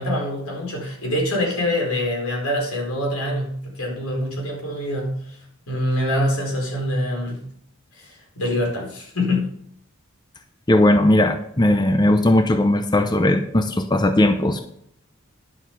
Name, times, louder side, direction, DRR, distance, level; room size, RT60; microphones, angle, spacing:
voice 1, 0.0-5.4 5.7-7.5 7.9-9.5, left 1 dB, 90° left, 0 dB, 4.5 m, -25 dB
voice 2, 10.7-14.6, left 1 dB, 20° left, 7 dB, 0.7 m, -18 dB
11.0 x 7.1 x 5.9 m, 0.69 s
head